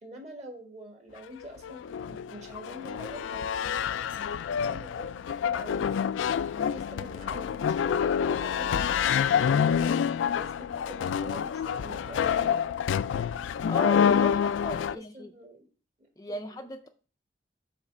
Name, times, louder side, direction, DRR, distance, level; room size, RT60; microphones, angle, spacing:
voice 1, 0.0-3.9 4.5-6.1 6.7-8.9 9.6-12.6 14.8-15.7 16.3-16.7, right 1 dB, 35° right, 2 dB, 1.7 m, -45 dB
sound 1, 1.4-15.0, left 7 dB, 85° left, 0.3 m, -27 dB
voice 2, 13.7-15.3 16.2-16.9, equal, 20° left, 5 dB, 0.4 m, -36 dB
7.9 x 3.3 x 6.1 m, 0.37 s
head